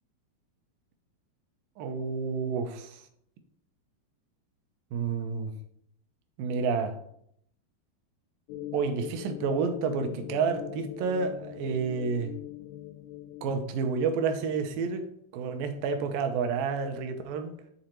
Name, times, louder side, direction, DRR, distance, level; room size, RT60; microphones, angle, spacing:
voice 1, 1.8-3.0 4.9-5.5 6.4-7.0 8.7-12.3 13.4-15.1 15.3-17.6, right 5 dB, 75° right, 7 dB, 2.3 m, -30 dB
sound 1, 8.5-13.6, left 12 dB, 85° left, 2.4 m, -41 dB
10.0 x 3.9 x 4.5 m, 0.70 s
omnidirectional pair, 4.4 m